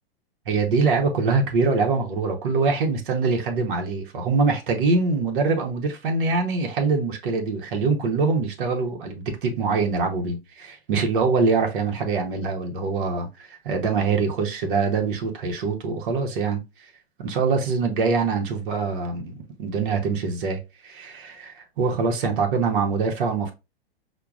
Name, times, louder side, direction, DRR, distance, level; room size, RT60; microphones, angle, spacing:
voice 1, 0.5-16.6 17.2-23.5, right 4 dB, 55° right, 0.9 m, -24 dB
5.7 x 2.2 x 2.3 m
figure-of-eight pair, 105°, 31 cm